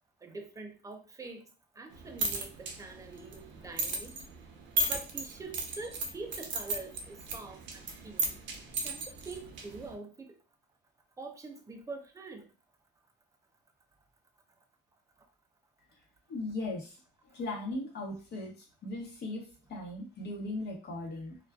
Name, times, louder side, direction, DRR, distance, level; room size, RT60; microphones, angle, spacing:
voice 1, 0.2-1.5 1.8-4.1 4.9-8.4 8.8-10.4 11.2-12.5, right 3 dB, 15° right, 5 dB, 0.5 m, -45 dB
sound 1, 1.9-9.9, right 2 dB, 75° right, 0.6 m, -36 dB
voice 2, 16.3-17.0 17.3-21.4, left 2 dB, 60° left, 0 dB, 1.0 m, -38 dB
2.4 x 2.2 x 2.3 m, 0.35 s
cardioid pair, 100°, 19 cm